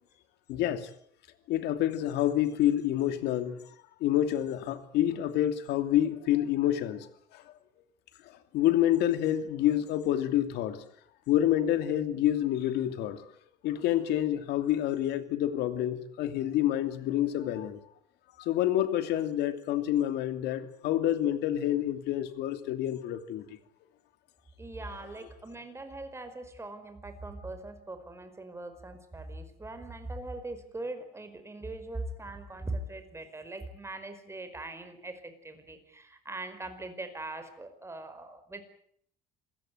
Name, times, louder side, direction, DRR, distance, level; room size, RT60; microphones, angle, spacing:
voice 1, 0.5-0.9 1.5-3.6 4.0-7.1 7.3-7.4 8.5-10.9 11.3-13.2 13.6-17.8 18.4-23.4 25.2-25.3, left 12 dB, 85° left, 2.8 m, -28 dB
voice 2, 24.6-38.6, right 2 dB, 15° right, 5.0 m, -41 dB
26.5 x 17.0 x 9.4 m
cardioid pair, 110°, 17 cm